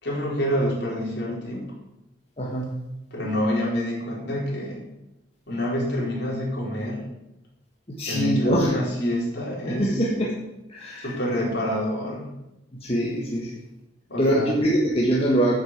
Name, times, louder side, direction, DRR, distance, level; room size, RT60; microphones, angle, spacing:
voice 1, 0.0-1.8 3.1-4.9 5.5-7.1 8.1-10.0 11.0-12.3 14.1-14.6, left 1 dB, 60° left, -3 dB, 4.2 m, -27 dB
voice 2, 2.4-2.8 7.9-8.8 9.7-10.4 10.7-11.1 12.7-13.6 14.2-15.5, right 1 dB, 30° left, -3 dB, 1.6 m, -23 dB
9.6 x 6.8 x 8.1 m, 0.91 s
head